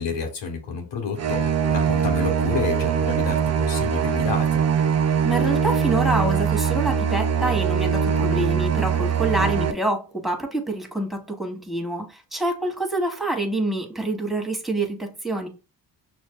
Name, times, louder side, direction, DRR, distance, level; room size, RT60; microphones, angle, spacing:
voice 1, 0.0-1.4 1.7-4.6, left 5 dB, 70° left, 1.2 m, -29 dB
sound 1, 1.2-9.7, right 7 dB, 35° right, 0.5 m, -22 dB
voice 2, 5.2-15.5, right 2 dB, ahead, 1.2 m, -26 dB
6.2 x 2.5 x 2.2 m
supercardioid pair, 55°, 45 cm